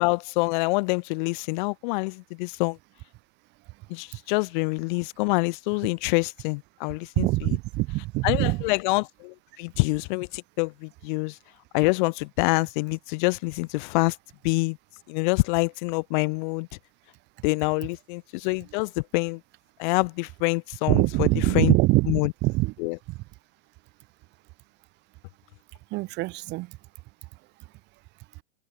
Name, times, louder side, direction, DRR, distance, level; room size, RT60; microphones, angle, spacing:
voice 1, 0.0-2.8 3.9-7.6 8.2-11.4 11.7-14.2 14.4-14.8 15.1-16.7 17.4-19.4 19.8-21.3 21.5-21.7 22.1-22.3 22.8-23.0, left 27 dB, 35° left, 6.0 m, -26 dB
voice 2, 7.2-8.6 20.9-22.7 25.9-26.8, right 22 dB, 25° right, 3.4 m, -23 dB
supercardioid pair, 170°, 40 cm